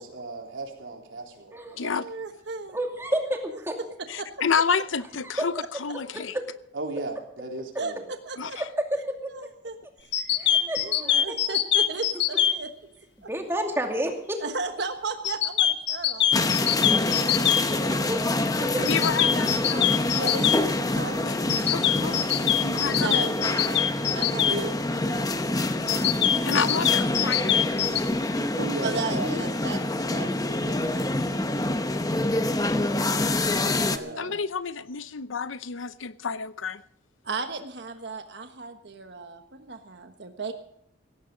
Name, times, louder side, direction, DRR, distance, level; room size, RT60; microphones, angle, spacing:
voice 1, 0.0-1.9 6.7-8.0 24.4-24.7 26.7-26.9 28.6-30.3 33.8-34.3, right 2 dB, 85° right, 3.8 m, -36 dB
voice 2, 2.0-2.8 4.2-4.3 7.8-7.9 8.2-8.6 9.3-9.8 10.5-12.7 14.4-16.6 17.0-17.9 20.1-21.3 22.9-23.8 24.1-26.0 28.8-29.8 30.1-31.6 33.5-34.4 37.2-40.5, right 3 dB, 60° right, 1.3 m, -36 dB
voice 3, 2.7-3.8 5.4-5.5 8.5-9.3 10.4-11.3 13.3-14.4 17.4-17.6 17.9-18.2 18.6-18.9 24.5-24.6, right 1 dB, 15° right, 2.5 m, -30 dB
voice 4, 4.1-5.5 5.8-6.3 8.4-8.5 18.8-19.9 21.2-23.2 26.4-27.9 34.2-36.8, left 6 dB, 90° left, 0.7 m, -30 dB
sound 1, 10.1-12.5 15.2-17.6 18.8-20.6 21.5-24.6 25.9-28.0, left 10 dB, 60° left, 1.0 m, -23 dB
sound 2, 16.3-34.0, left 2 dB, 20° left, 0.8 m, -26 dB
17.5 x 15.5 x 3.9 m
head